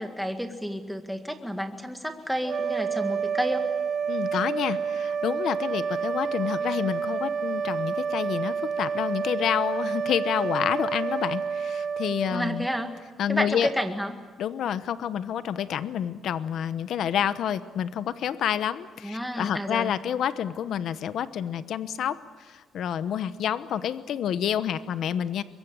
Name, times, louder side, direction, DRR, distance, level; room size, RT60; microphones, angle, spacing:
voice 1, 0.0-3.7 12.3-12.9 13.3-14.2 19.0-19.9, equal, ahead, 6 dB, 1.9 m, -30 dB
sound 1, 2.4-13.0, right 6 dB, 45° right, 0.8 m, -29 dB
voice 2, 4.1-12.7 13.2-13.7 14.4-22.2 22.7-25.4, left 9 dB, 65° left, 13 dB, 1.0 m, -28 dB
23.5 x 22.5 x 8.8 m, 1.3 s
cardioid pair, 140°, 0 cm